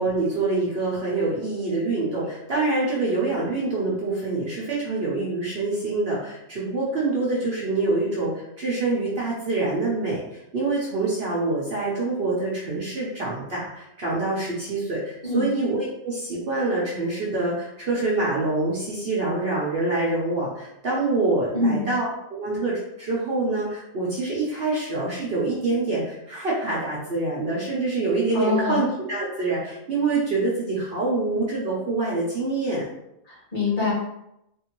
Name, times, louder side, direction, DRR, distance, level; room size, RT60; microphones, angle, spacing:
voice 1, 0.0-22.0 22.3-32.9, right 3 dB, 50° right, -7 dB, 1.0 m, -26 dB
voice 2, 21.5-21.9 28.3-28.8 33.3-33.9, left 3 dB, 40° left, -6 dB, 1.5 m, -24 dB
3.5 x 2.7 x 3.0 m, 0.81 s
omnidirectional pair, 1.4 m